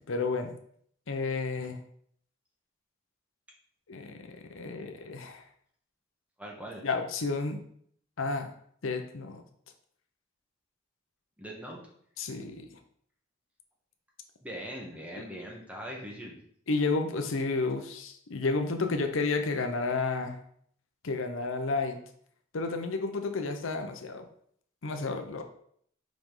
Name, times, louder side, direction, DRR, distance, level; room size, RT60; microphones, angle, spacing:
voice 1, 0.1-0.6 1.1-1.8 3.9-5.4 6.8-7.6 8.2-8.5 8.8-9.4 12.2-12.7 16.7-20.4 21.0-22.0 22.5-24.2 24.8-25.4, left 3 dB, 85° left, 6 dB, 0.7 m, -31 dB
voice 2, 6.4-6.9 11.4-11.8 14.4-16.4, equal, 5° right, -2 dB, 1.3 m, -41 dB
5.1 x 5.0 x 3.8 m, 0.64 s
head